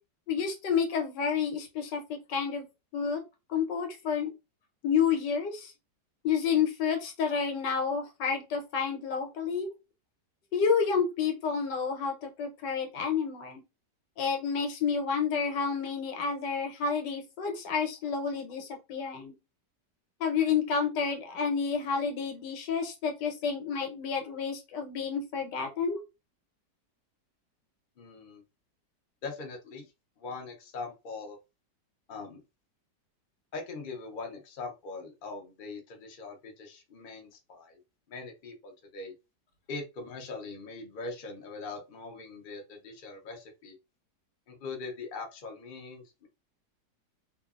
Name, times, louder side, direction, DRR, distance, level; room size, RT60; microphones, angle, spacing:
voice 1, 0.3-2.6 2.9-3.2 3.5-4.3 4.8-5.7 6.2-9.7 10.5-13.6 14.2-19.3 20.2-26.0, left 6 dB, 85° left, 4 dB, 1.4 m, -30 dB
voice 2, 28.0-28.4 29.2-29.9 30.2-31.4 32.1-32.4 33.5-37.8 38.1-39.1 39.7-43.7 44.5-46.3, left 3 dB, 50° left, 2 dB, 0.6 m, -41 dB
2.7 x 2.5 x 2.4 m, 0.26 s
omnidirectional pair, 1.9 m